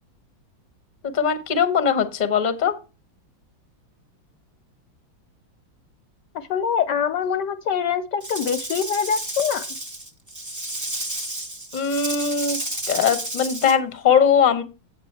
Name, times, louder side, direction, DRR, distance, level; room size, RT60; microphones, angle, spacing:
voice 1, 1.1-2.7 11.7-12.6 12.9-14.6, left 7 dB, 35° left, 11 dB, 0.7 m, -20 dB
voice 2, 6.3-9.7, left 7 dB, 70° left, 11 dB, 1.1 m, -24 dB
Rattle / Rattle (instrument), 8.2-13.7, right 1 dB, 20° right, 0.4 m, -31 dB
8.3 x 7.3 x 4.4 m, 0.31 s
omnidirectional pair, 2.2 m